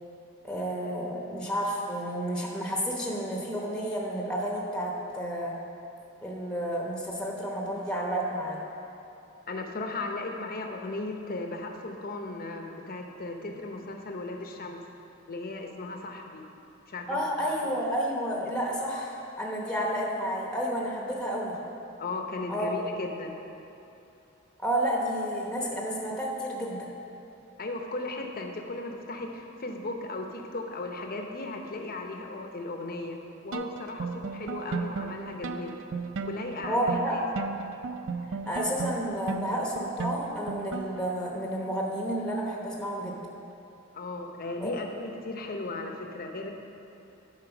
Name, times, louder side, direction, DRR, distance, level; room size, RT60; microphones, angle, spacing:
voice 1, 0.4-5.6 6.2-8.6 17.1-21.6 22.5-22.7 24.6-26.9 36.7-37.3 38.5-43.2 44.6-44.7, equal, 5° left, -2 dB, 0.9 m, -31 dB
voice 2, 9.5-14.8 15.3-16.4 16.9-17.5 22.0-23.3 27.6-33.2 33.4-35.8 36.2-37.2 43.9-46.5, left 2 dB, 45° left, 3 dB, 0.8 m, -36 dB
sound 1, 33.5-41.2, right 5 dB, 60° right, 0.4 m, -36 dB
10.5 x 4.7 x 5.9 m, 2.8 s
head